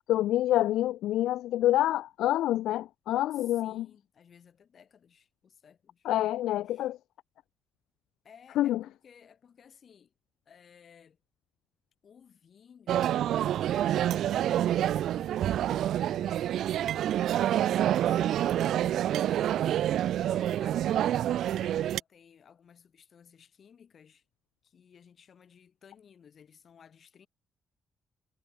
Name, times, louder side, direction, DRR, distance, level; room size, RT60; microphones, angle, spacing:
voice 1, 0.1-3.9 6.0-7.0 8.6-8.8, left 14 dB, 85° left, 0.5 m, -27 dB
voice 2, 3.3-6.1 6.7-6.9 8.2-10.1 10.5-11.2 12.0-13.1 14.2-18.5 19.2-24.2 24.6-27.3, left 7 dB, 50° left, 6.5 m, -57 dB
sound 1, 12.9-22.0, right 11 dB, 75° right, 0.6 m, -27 dB
cardioid pair, 90°, 0 cm